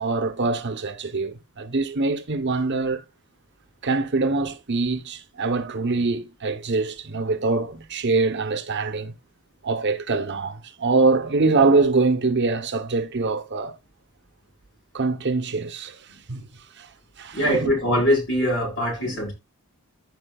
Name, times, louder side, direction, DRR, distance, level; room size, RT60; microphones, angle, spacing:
voice 1, 0.0-3.0 3.8-9.1 9.6-13.8 14.9-16.5 16.8-16.9 17.2-17.7 19.1-19.2, right 3 dB, 50° right, 1.1 m, -24 dB
voice 2, 17.3-19.3, equal, 55° left, 5.4 m, -22 dB
14.5 x 5.3 x 2.4 m
head